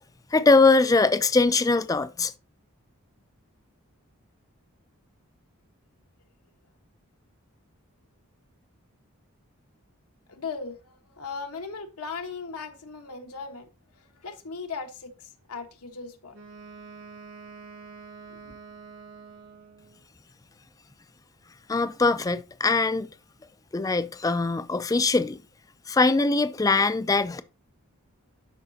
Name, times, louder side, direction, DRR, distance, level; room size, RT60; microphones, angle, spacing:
voice 1, 0.3-2.3 21.7-23.1 23.7-25.4 25.9-27.4, left 3 dB, 15° left, 0.3 m, -22 dB
voice 2, 10.3-13.7 13.9-16.3 18.3-18.5, left 4 dB, 85° left, 1.3 m, -38 dB
Wind instrument woodwind instrument, 16.3-20.0, right 4 dB, 70° right, 2.6 m, -46 dB
11.5 x 4.9 x 2.7 m
head